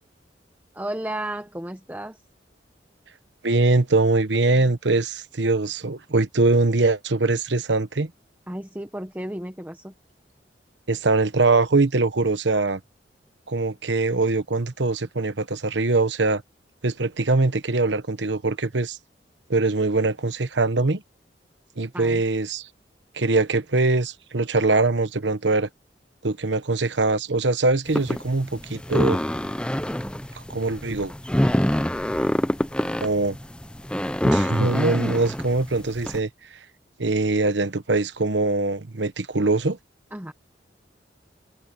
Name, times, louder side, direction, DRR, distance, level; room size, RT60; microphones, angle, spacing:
voice 1, 0.7-2.2 8.5-9.9 21.9-22.2 40.1-40.3, right 1 dB, 10° right, 1.1 m, -33 dB
voice 2, 3.4-8.1 10.9-12.8 13.5-16.4 16.8-19.0 19.5-21.0 21.8-22.7 23.1-25.7 26.2-29.2 30.3-31.1 33.0-33.4 34.2-36.3 37.0-39.8, right 3 dB, 85° right, 1.2 m, -22 dB
sound 1, 27.9-36.2, equal, 5° left, 0.7 m, -25 dB
head